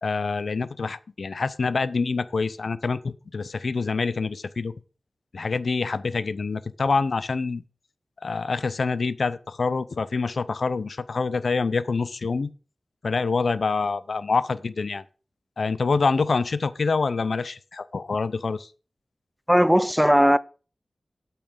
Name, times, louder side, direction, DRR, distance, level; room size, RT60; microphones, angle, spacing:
voice 1, 0.0-4.7 5.3-7.6 8.2-12.5 13.0-15.0 15.6-18.7, left 4 dB, 75° left, 0.6 m, -26 dB
voice 2, 19.5-20.4, equal, 5° right, 0.5 m, -17 dB
8.8 x 5.8 x 6.5 m
wide cardioid pair, 90°, 0 cm